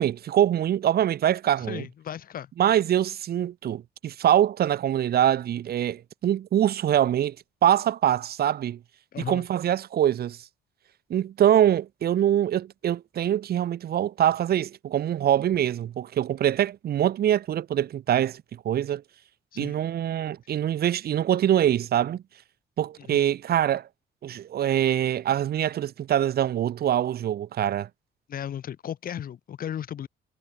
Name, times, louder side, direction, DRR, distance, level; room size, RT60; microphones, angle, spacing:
voice 1, 0.0-1.9 2.6-7.4 7.6-8.8 9.3-10.4 11.1-19.0 19.6-22.2 22.8-23.9 24.2-27.9, right 11 dB, 55° right, 2.4 m, -24 dB
voice 2, 1.6-2.5 9.1-9.4 19.5-19.8 23.0-23.2 28.3-30.1, left 9 dB, 50° left, 3.4 m, -35 dB
cardioid pair, 160°, 19 cm